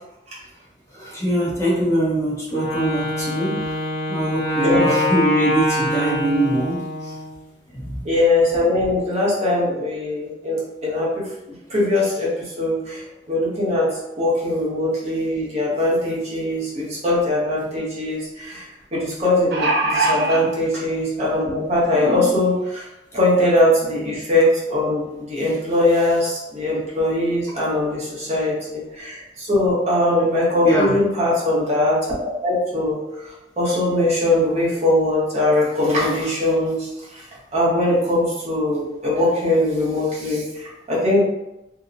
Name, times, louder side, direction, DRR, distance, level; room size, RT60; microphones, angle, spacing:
voice 1, 0.9-3.8 4.1-7.2 7.7-8.0 30.6-31.0, right 1 dB, 15° left, -8 dB, 0.6 m, -22 dB
Wind instrument woodwind instrument, 2.5-7.3, left 1 dB, 85° left, 0.8 m, -24 dB
voice 2, 4.6-5.0 8.0-13.0 13.3-22.8 23.1-32.0 32.4-33.0 33.6-37.2 37.5-41.2, left 1 dB, 40° right, -6 dB, 0.8 m, -21 dB
sound 1, 19.2-20.4 21.3-21.4 21.8-21.9, right 2 dB, 60° right, 0.5 m, -21 dB
2.8 x 2.0 x 2.4 m, 0.92 s
head